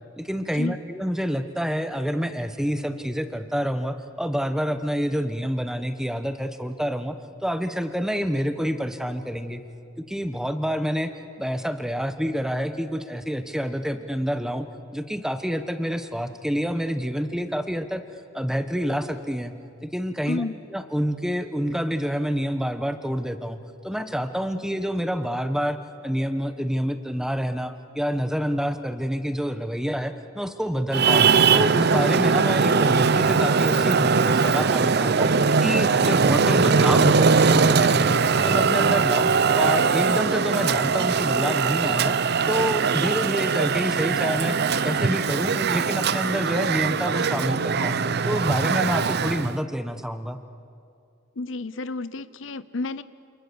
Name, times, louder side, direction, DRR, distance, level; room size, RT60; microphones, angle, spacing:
voice 1, 0.2-7.2 7.4-9.6 10.1-11.1 11.4-14.7 14.9-18.0 18.3-19.5 19.8-23.6 23.8-25.8 26.0-31.3 31.5-35.3 35.6-38.2 38.4-42.2 42.5-44.6 44.8-48.0 48.2-50.4, equal, 5° right, 8 dB, 1.3 m, -27 dB
voice 2, 20.3-20.6 51.4-53.0, left 3 dB, 75° left, 15 dB, 0.7 m, -31 dB
Traffic noise roadway noise, 30.9-49.6, right 5 dB, 55° right, 0.7 m, -21 dB
28.5 x 28.0 x 7.1 m, 2.4 s
head